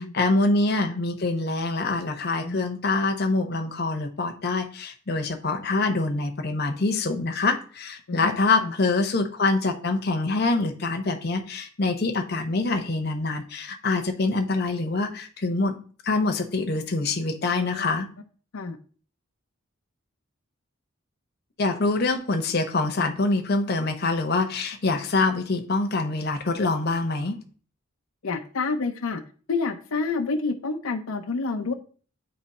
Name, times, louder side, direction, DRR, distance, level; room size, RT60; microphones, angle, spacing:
voice 1, 0.0-15.8 16.0-18.1 21.6-27.4, left 3 dB, 50° left, 5 dB, 0.8 m, -25 dB
voice 2, 8.1-8.7 17.6-17.9 18.5-18.8 28.2-29.2 29.5-31.7, left 4 dB, 85° left, 4 dB, 0.6 m, -29 dB
8.8 x 3.1 x 4.1 m, 0.41 s
head